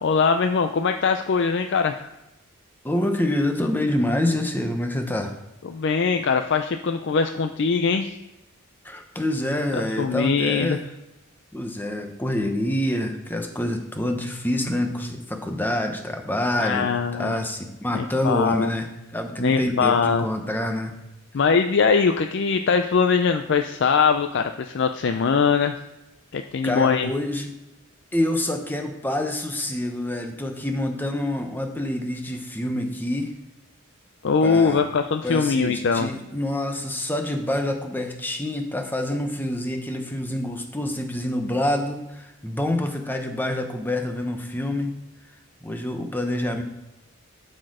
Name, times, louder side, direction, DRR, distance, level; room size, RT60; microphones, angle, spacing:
voice 1, 0.0-2.1 5.7-8.2 9.7-10.8 16.6-17.4 17.9-18.7 19.4-20.3 21.3-25.7 26.3-27.1 34.2-36.1, left 5 dB, 55° left, 6 dB, 0.4 m, -22 dB
voice 2, 2.8-5.3 8.8-10.9 11.5-20.9 26.6-27.5 28.1-33.3 34.4-34.8 35.2-45.0 45.6-46.6, left 1 dB, 10° left, 4 dB, 0.8 m, -27 dB
12.0 x 4.3 x 4.9 m, 0.97 s
head